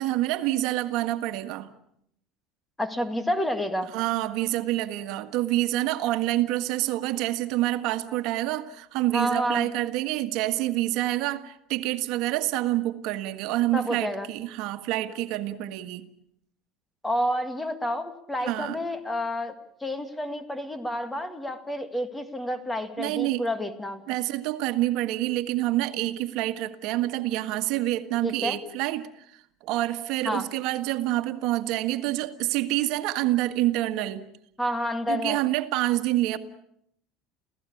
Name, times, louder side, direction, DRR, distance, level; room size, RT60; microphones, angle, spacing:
voice 1, 0.0-1.7 3.9-16.1 18.4-18.8 23.0-23.5 24.1-34.2 35.1-36.4, right 15 dB, 70° right, 10 dB, 1.6 m, -27 dB
voice 2, 2.8-3.9 9.1-9.7 13.7-14.3 17.0-19.5 19.8-24.0 28.2-28.6 30.3-30.5 34.6-35.4, equal, 10° left, 10 dB, 2.0 m, -29 dB
29.0 x 16.5 x 8.6 m, 0.73 s
cardioid pair, 125°, 0 cm